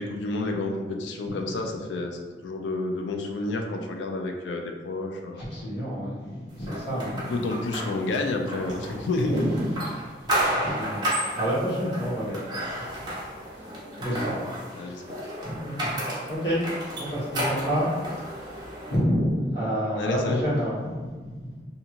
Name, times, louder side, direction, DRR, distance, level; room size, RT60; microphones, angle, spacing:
voice 1, 0.0-5.5 7.1-9.3 14.1-14.3 14.7-15.2 20.0-20.4, left 2 dB, 90° left, 3 dB, 0.4 m, -30 dB
voice 2, 5.4-7.3 9.2-9.7 10.0-10.1 10.4-12.7 13.5-15.0 15.4-16.0 16.3-16.6 17.0-17.9 18.2-21.6, equal, 70° left, -8 dB, 1.2 m, -29 dB
sound 1, 6.7-18.9, right 1 dB, 25° right, 0.6 m, -32 dB
2.8 x 2.6 x 2.4 m, 1.4 s
head